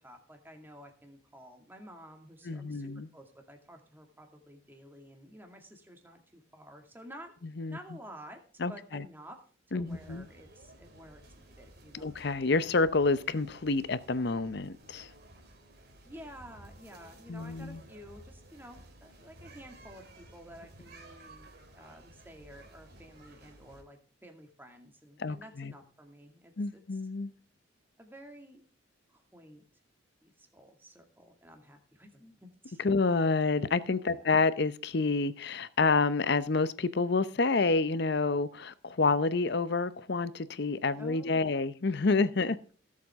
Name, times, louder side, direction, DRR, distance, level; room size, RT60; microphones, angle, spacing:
voice 1, 0.0-7.3 7.7-8.4 8.7-9.4 9.7-12.1 16.0-21.5 21.7-27.0 28.0-28.6 29.1-29.6 30.2-33.0 34.1-34.4 41.0-41.6 42.4-42.7, equal, 10° right, 2.1 m, -52 dB
voice 2, 2.4-3.1 7.6-7.8 8.6-9.0 9.7-10.2 11.9-15.1 17.3-17.8 25.2-25.7 26.6-27.3 32.8-42.6, left 3 dB, 55° left, 0.7 m, -28 dB
sound 1, 9.9-23.8, right 1 dB, 55° right, 2.7 m, -54 dB
17.0 x 7.5 x 3.6 m
head